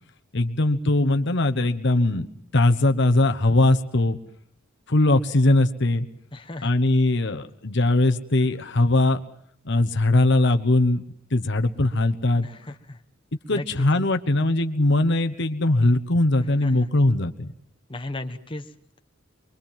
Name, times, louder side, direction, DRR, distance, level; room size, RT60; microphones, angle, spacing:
voice 1, 0.3-2.3 2.5-4.2 4.9-6.1 6.6-9.2 9.6-11.0 11.3-12.5 13.5-17.5, left 2 dB, 60° left, 7 dB, 1.2 m, -20 dB
voice 2, 6.3-6.7 12.4-13.0 13.5-13.9 16.4-16.9 17.9-19.0, left 2 dB, 25° left, 6 dB, 1.2 m, -36 dB
24.0 x 23.5 x 7.4 m, 0.66 s
head